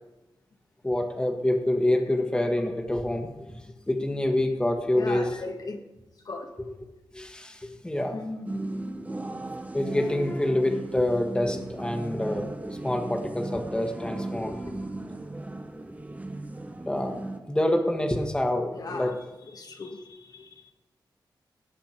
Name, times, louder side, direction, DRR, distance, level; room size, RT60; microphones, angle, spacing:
voice 1, 0.8-5.4 7.1-8.2 9.7-14.9 16.9-19.1, left 1 dB, 10° left, 4 dB, 1.5 m, -27 dB
voice 2, 4.9-5.8 6.2-6.5 8.1-8.7 18.7-19.2 19.5-20.7, left 3 dB, 55° left, 3 dB, 1.4 m, -37 dB
sound 1, 8.4-17.4, right 2 dB, 20° right, 0.8 m, -36 dB
18.0 x 7.7 x 4.5 m, 1.0 s
wide cardioid pair, 105°, 8 cm